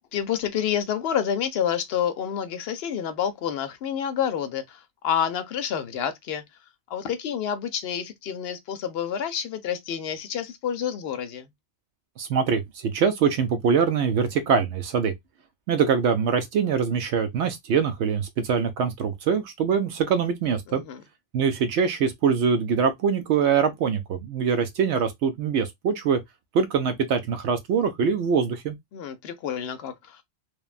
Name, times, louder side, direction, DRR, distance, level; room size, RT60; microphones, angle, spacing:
voice 1, 0.1-6.4 6.9-11.5 20.7-21.0 28.9-30.2, left 8 dB, 65° left, 0.7 m, -28 dB
voice 2, 12.2-15.1 15.7-20.8 21.3-26.2 26.5-28.8, right 6 dB, 70° right, 0.8 m, -23 dB
3.1 x 2.2 x 2.3 m
omnidirectional pair, 1.2 m